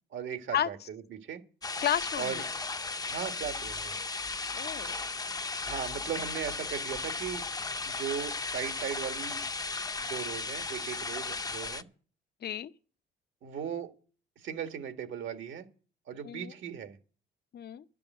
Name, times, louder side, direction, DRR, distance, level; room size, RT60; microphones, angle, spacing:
voice 1, 0.1-1.4 2.2-2.4 3.1-4.0 5.6-7.4 7.9-9.4 10.0-11.8 13.4-13.9 14.4-15.7 16.1-17.0, right 8 dB, 75° right, 1.6 m, -38 dB
sound 1, 1.6-11.8, left 3 dB, 20° left, 0.6 m, -35 dB
voice 2, 1.8-2.4 4.5-5.0 12.4-12.7 16.2-16.5 17.5-17.8, left 10 dB, 55° left, 0.7 m, -32 dB
11.5 x 6.9 x 9.3 m
cardioid pair, 90°, 20 cm